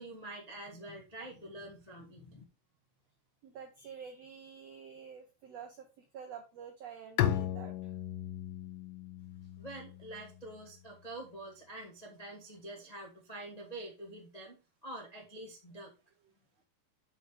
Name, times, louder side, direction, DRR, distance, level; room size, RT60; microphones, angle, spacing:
voice 1, 0.0-2.4 9.6-15.9, right 1 dB, 40° left, -1 dB, 0.5 m, -46 dB
voice 2, 3.4-7.9, right 7 dB, 80° right, 6 dB, 1.5 m, -48 dB
Bowed string instrument, 7.2-10.7, left 11 dB, 80° left, 2.0 m, -36 dB
7.9 x 4.6 x 5.0 m, 0.28 s
omnidirectional pair, 4.3 m